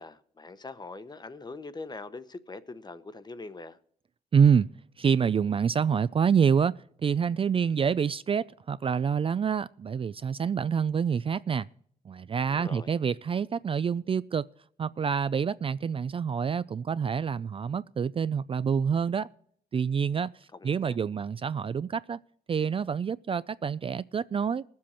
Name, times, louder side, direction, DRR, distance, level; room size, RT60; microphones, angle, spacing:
voice 1, 0.0-3.8 12.5-12.9 20.5-21.0, left 3 dB, 25° left, 1.0 m, -42 dB
voice 2, 4.3-4.7 5.0-6.7 7.0-11.7 12.1-14.4 14.8-19.3 19.7-22.2 22.5-24.6, right 7 dB, 35° right, 0.4 m, -27 dB
20.0 x 7.5 x 4.4 m
cardioid pair, 70°, 15 cm